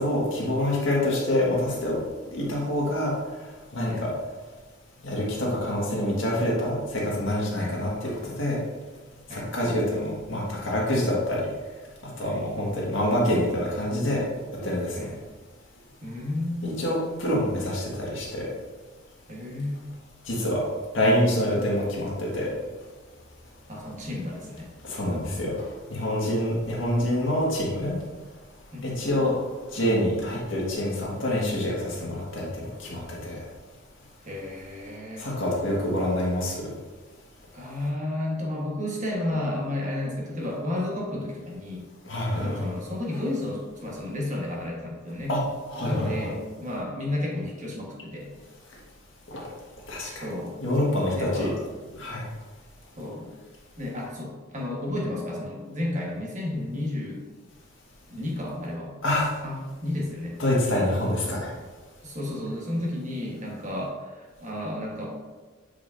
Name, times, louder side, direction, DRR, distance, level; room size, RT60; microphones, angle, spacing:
voice 1, 0.0-2.0 2.3-3.1 3.7-4.1 5.0-8.6 9.3-11.4 12.0-14.2 14.5-14.9 16.6-18.5 20.3-20.6 20.9-22.5 24.9-25.5 25.9-28.0 28.8-29.3 29.7-32.5 32.9-33.4 35.2-36.6 42.1-42.7 45.3-45.4 45.7-46.3 49.3-49.4 49.9-50.3 50.6-51.5 52.0-52.2 59.0-59.3 60.4-61.5, left 1 dB, 65° left, -4 dB, 1.8 m, -26 dB
voice 2, 16.0-16.8 19.3-19.8 23.7-24.7 28.7-29.0 34.2-35.3 37.5-41.8 42.3-45.3 45.8-48.3 50.1-50.6 51.1-51.6 53.0-53.3 53.8-57.2 58.1-58.9 59.4-60.4 62.0-65.1, left 1 dB, 35° right, -2 dB, 1.4 m, -32 dB
8.2 x 4.9 x 2.7 m, 1.3 s
head